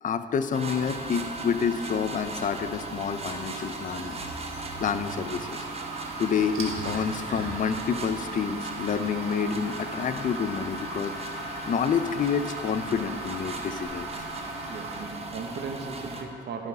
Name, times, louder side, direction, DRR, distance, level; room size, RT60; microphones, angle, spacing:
voice 1, 0.0-4.2 4.8-5.6 6.2-11.4 11.7-14.1, left 6 dB, 40° left, 10 dB, 0.5 m, -28 dB
sound 1, 0.5-16.2, right 2 dB, 30° right, 1.0 m, -37 dB
sound 2, 2.2-15.0, right 3 dB, 85° right, 1.4 m, -40 dB
voice 2, 14.6-16.7, right 5 dB, 60° right, 4 dB, 1.0 m, -37 dB
12.0 x 5.4 x 4.1 m, 2.7 s
cardioid pair, 90°, 20 cm